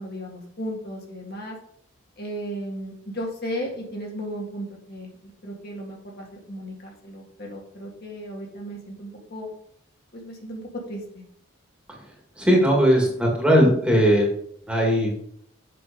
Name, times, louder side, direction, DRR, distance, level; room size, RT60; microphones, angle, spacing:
voice 1, 0.0-1.6 2.2-9.5 10.1-11.2, equal, 50° left, -1 dB, 1.8 m, -35 dB
voice 2, 12.4-14.3 14.7-15.1, equal, 5° right, -2 dB, 1.9 m, -18 dB
7.6 x 5.7 x 5.2 m, 0.67 s
head